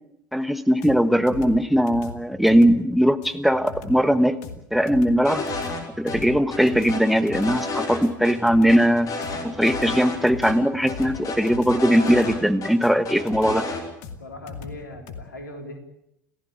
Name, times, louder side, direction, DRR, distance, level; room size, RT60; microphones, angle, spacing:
voice 1, 0.3-4.4 4.7-5.4 6.0-9.1 9.4-13.7, equal, ahead, 13 dB, 1.3 m, -20 dB
sound 1, 0.8-15.2, left 5 dB, 55° left, 2.3 m, -39 dB
sound 2, 5.2-5.8 6.1-6.2 6.5-8.3 8.7-10.2 10.4-10.5 10.9-12.7 13.0-13.8, left 3 dB, 35° left, 5.4 m, -31 dB
voice 2, 14.2-15.8, left 1 dB, 80° left, 6 dB, 3.7 m, -39 dB
29.0 x 15.5 x 8.6 m, 0.81 s
figure-of-eight pair, 70°, 10 cm